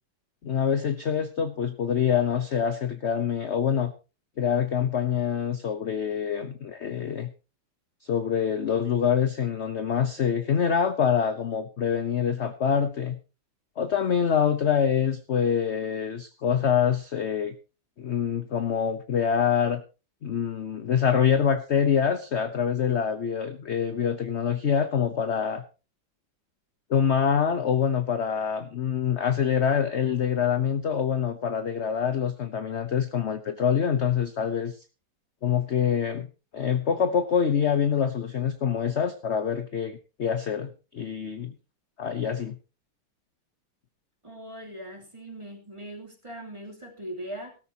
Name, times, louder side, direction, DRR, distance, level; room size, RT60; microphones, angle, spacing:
voice 1, 0.4-3.9 4.4-7.3 8.0-13.2 13.8-17.5 18.0-19.8 20.2-25.6 26.9-34.8 35.4-36.3 36.5-41.5 42.0-42.6, left 7 dB, 50° left, 10 dB, 0.9 m, -25 dB
voice 2, 44.2-47.6, right 1 dB, 15° right, 2 dB, 3.2 m, -40 dB
17.5 x 13.5 x 2.9 m, 0.32 s
omnidirectional pair, 2.1 m